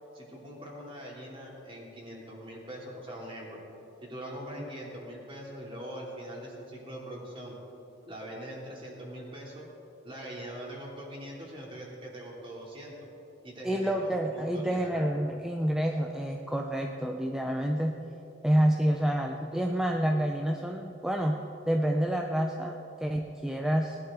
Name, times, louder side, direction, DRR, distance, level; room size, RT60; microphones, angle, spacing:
voice 1, 0.1-3.6 4.0-7.6 8.1-9.7 10.0-12.9 13.4-15.1, equal, 30° right, -3 dB, 2.8 m, -42 dB
voice 2, 13.6-17.9 18.4-21.4 21.7-24.0, right 1 dB, 5° right, 1 dB, 0.5 m, -28 dB
19.0 x 11.0 x 3.7 m, 2.9 s
head